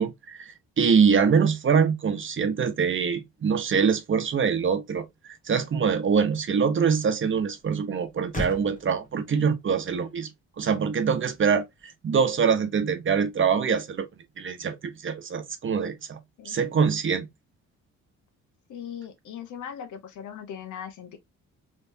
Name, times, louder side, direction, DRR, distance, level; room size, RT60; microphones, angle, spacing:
voice 1, 0.0-10.3 10.6-14.1 14.4-16.2 16.4-17.3, right 6 dB, 40° right, 0.9 m, -24 dB
Motor vehicle (road), 5.1-12.9, left 2 dB, 25° left, 1.3 m, -44 dB
voice 2, 18.7-21.2, left 8 dB, 75° left, 1.0 m, -39 dB
3.4 x 3.2 x 2.6 m
cardioid pair, 90°, 30 cm